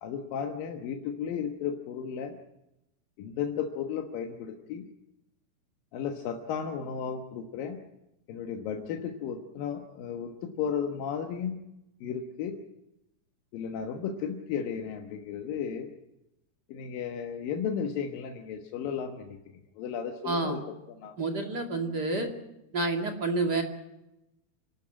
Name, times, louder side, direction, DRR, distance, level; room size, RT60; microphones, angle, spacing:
voice 1, 0.0-2.4 3.2-4.8 5.9-7.8 8.3-11.6 12.0-12.6 13.5-15.9 16.7-19.4 19.8-20.6 20.9-21.2, left 7 dB, 65° left, 3 dB, 2.7 m, -34 dB
voice 2, 20.2-20.6 21.2-22.3 22.7-23.6, right 3 dB, 35° right, 3 dB, 1.9 m, -29 dB
28.0 x 12.5 x 8.9 m, 0.90 s
omnidirectional pair, 4.9 m